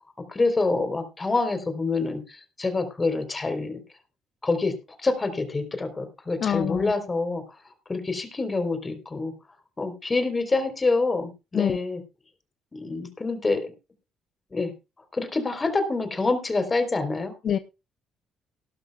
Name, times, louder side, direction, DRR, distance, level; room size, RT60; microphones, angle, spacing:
voice 1, 0.3-3.8 4.4-4.7 5.0-7.4 7.9-9.3 9.8-12.0 12.7-13.7 14.5-14.7 15.1-17.3, left 3 dB, 30° left, 8 dB, 3.8 m, -26 dB
voice 2, 6.4-6.9 11.5-11.8 17.4-17.6, left 9 dB, 55° left, 13 dB, 0.7 m, -25 dB
18.5 x 12.0 x 2.4 m, 0.28 s
hypercardioid pair, 50°, 0 cm